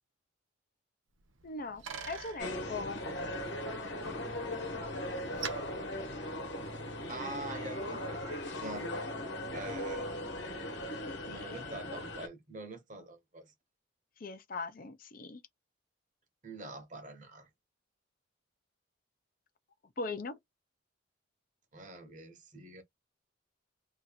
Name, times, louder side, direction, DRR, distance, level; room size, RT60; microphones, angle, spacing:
Bicycle, 1.2-6.9, right 6 dB, 85° right, 0.9 m, -48 dB
voice 1, 1.4-3.0 11.3-11.5 14.2-15.4 20.0-20.4, left 3 dB, 45° left, 0.5 m, -40 dB
sound 1, 2.4-12.3, left 1 dB, 65° left, 1.3 m, -38 dB
voice 2, 7.1-9.2 9.5-10.1 11.2-13.5 16.4-17.5 21.7-22.8, right 2 dB, 40° right, 1.1 m, -45 dB
2.8 x 2.5 x 4.0 m
head